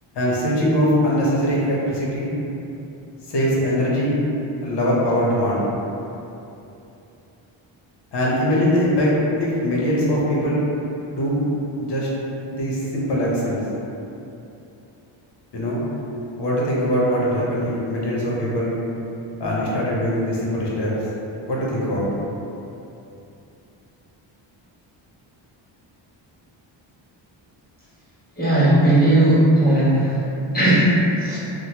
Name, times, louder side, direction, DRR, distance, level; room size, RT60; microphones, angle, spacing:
voice 1, 0.1-2.3 3.3-4.2 4.6-5.7 8.1-9.1 9.4-10.6 11.1-11.4 11.8-12.1 12.4-13.6 15.5-15.8 16.4-18.7 19.4-20.9 21.5-22.1, equal, 55° left, -5 dB, 0.9 m, -22 dB
voice 2, 28.4-30.2 30.5-31.4, right 1 dB, 20° left, -11 dB, 1.3 m, -17 dB
2.9 x 2.1 x 2.9 m, 2.9 s
cardioid pair, 85°, 49 cm